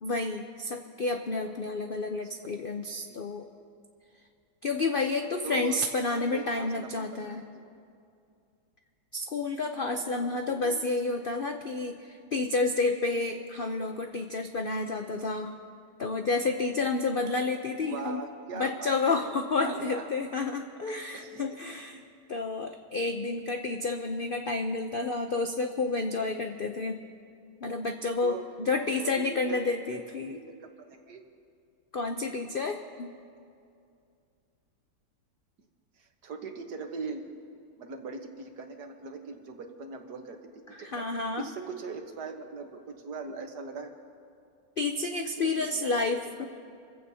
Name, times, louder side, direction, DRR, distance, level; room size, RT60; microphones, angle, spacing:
voice 1, 0.0-3.4 4.6-7.4 9.1-15.5 16.0-18.2 18.5-22.0 22.3-27.0 27.6-30.4 31.9-33.1 40.8-41.5 44.8-46.5, left 3 dB, 65° left, 4 dB, 0.5 m, -30 dB
voice 2, 5.2-5.8 6.1-7.6 9.7-10.8 17.8-19.3 19.6-20.1 21.1-21.6 28.2-28.5 29.0-31.2 36.0-37.2 37.8-41.0 41.3-43.9 45.4-45.9 46.3-46.5, right 4 dB, 65° right, 4 dB, 1.7 m, -41 dB
27.0 x 15.5 x 2.8 m, 2.4 s
omnidirectional pair, 1.9 m